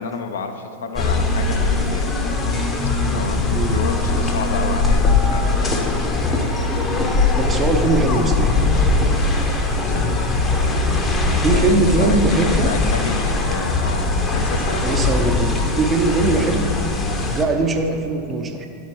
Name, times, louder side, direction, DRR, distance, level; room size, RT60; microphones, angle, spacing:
voice 1, 0.0-2.2 3.0-5.7 9.8-10.1 11.5-15.3 16.2-16.4, left 4 dB, 60° left, 6 dB, 0.5 m, -30 dB
sound 1, 0.9-17.4, left 3 dB, 20° left, 0.7 m, -20 dB
voice 2, 3.5-3.9 6.6-6.7 7.3-8.5 11.2-12.7 14.8-16.7 17.3-18.7, right 3 dB, 20° right, 5 dB, 0.6 m, -21 dB
10.5 x 4.6 x 4.4 m, 2.8 s
figure-of-eight pair, 90°, 0 cm